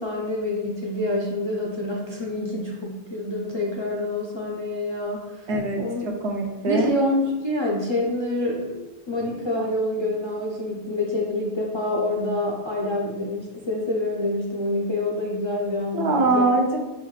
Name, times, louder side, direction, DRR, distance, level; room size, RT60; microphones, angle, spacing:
voice 1, 0.0-5.5 5.8-6.1 6.7-16.5, left 1 dB, 50° left, -3 dB, 0.3 m, -27 dB
voice 2, 5.5-6.9 15.9-16.8, right 2 dB, 70° right, 0 dB, 1.0 m, -23 dB
5.4 x 2.3 x 3.2 m, 1.1 s
omnidirectional pair, 1.2 m